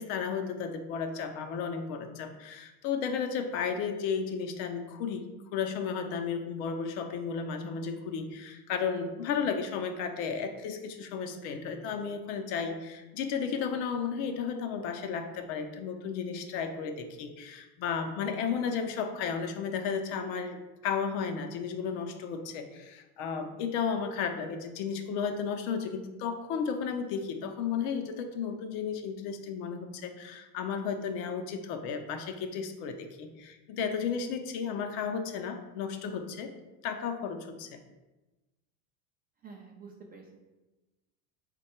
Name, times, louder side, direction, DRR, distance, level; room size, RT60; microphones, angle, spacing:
voice 1, 0.0-36.5 36.8-37.8, left 6 dB, 60° left, 6 dB, 0.6 m, -33 dB
voice 2, 39.4-40.4, right 5 dB, 25° right, 0 dB, 0.3 m, -48 dB
3.5 x 2.2 x 4.2 m, 1.1 s
supercardioid pair, 115°, 43 cm